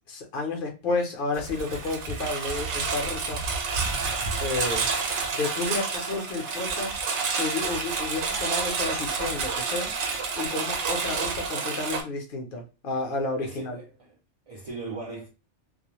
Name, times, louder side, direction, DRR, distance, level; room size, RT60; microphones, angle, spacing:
voice 1, 0.1-3.4 4.4-4.9 5.3-7.0 7.3-10.0 10.3-13.8, left 3 dB, 55° left, 0.7 m, -31 dB
Engine, 1.3-12.0, right 5 dB, 75° right, 0.9 m, -29 dB
voice 2, 13.4-14.2 14.5-15.3, right 3 dB, 50° right, 0.4 m, -38 dB
2.4 x 2.0 x 2.9 m
omnidirectional pair, 1.2 m